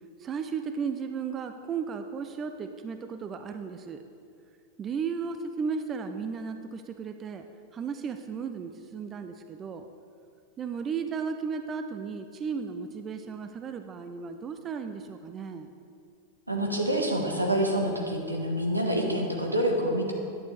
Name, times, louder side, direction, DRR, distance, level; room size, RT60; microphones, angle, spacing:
voice 1, 0.2-4.0 4.8-7.5 7.7-9.9 10.6-15.7, right 6 dB, 25° right, 7 dB, 0.5 m, -35 dB
voice 2, 16.5-20.1, right 1 dB, 85° right, 0 dB, 1.4 m, -27 dB
10.5 x 9.3 x 3.4 m, 2.4 s
figure-of-eight pair, 90°, 0 cm